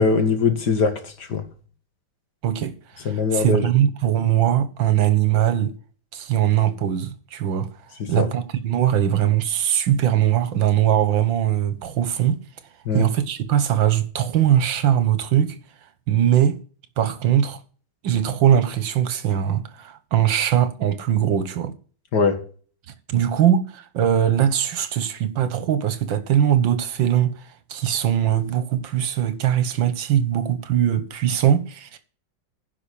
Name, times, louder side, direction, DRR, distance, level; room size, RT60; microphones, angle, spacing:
voice 1, 0.0-1.4 3.1-3.7 8.0-8.3 12.9-13.1 22.1-22.4, left 4 dB, 60° left, 2.3 m, -21 dB
voice 2, 2.4-5.7 6.1-7.7 8.1-12.4 12.9-15.6 16.1-16.6 17.0-17.6 18.0-21.7 23.1-27.3 27.7-32.0, right 10 dB, 75° right, 1.9 m, -21 dB
10.5 x 5.9 x 8.5 m
omnidirectional pair, 2.1 m